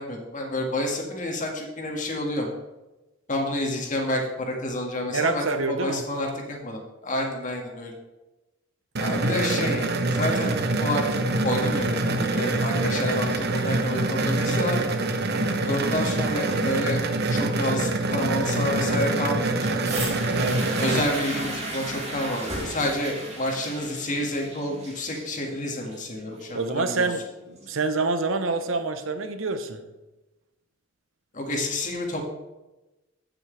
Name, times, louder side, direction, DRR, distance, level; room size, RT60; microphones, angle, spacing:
voice 1, 0.0-2.5 3.3-7.9 9.0-10.5 10.8-15.0 15.6-17.0 17.3-19.8 20.8-27.1 31.3-32.2, left 1 dB, 40° left, 1 dB, 2.0 m, -29 dB
voice 2, 5.0-6.1 20.3-21.0 26.5-29.8, right 3 dB, 90° right, 9 dB, 0.9 m, -27 dB
sound 1, 9.0-21.0, right 2 dB, 55° right, 0.9 m, -25 dB
sound 2, 19.8-27.8 28.6-28.7, right 1 dB, 35° right, 2.8 m, -35 dB
15.5 x 6.3 x 3.4 m, 1.0 s
head